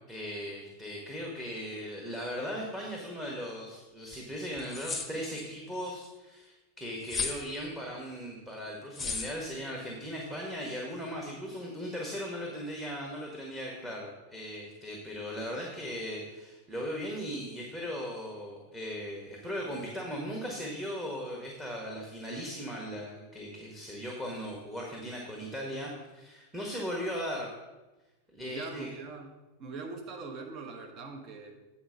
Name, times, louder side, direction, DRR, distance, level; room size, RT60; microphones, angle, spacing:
voice 1, 0.1-27.5 28.3-28.9, equal, 10° right, -2 dB, 1.4 m, -38 dB
sound 1, 4.1-4.2 4.6-5.5 7.0-7.4 8.9-9.3, left 4 dB, 15° left, 0.9 m, -34 dB
voice 2, 28.4-29.3 29.6-31.6, right 4 dB, 35° right, 3 dB, 1.2 m, -42 dB
8.9 x 4.3 x 6.3 m, 1.1 s
figure-of-eight pair, 90°, 0 cm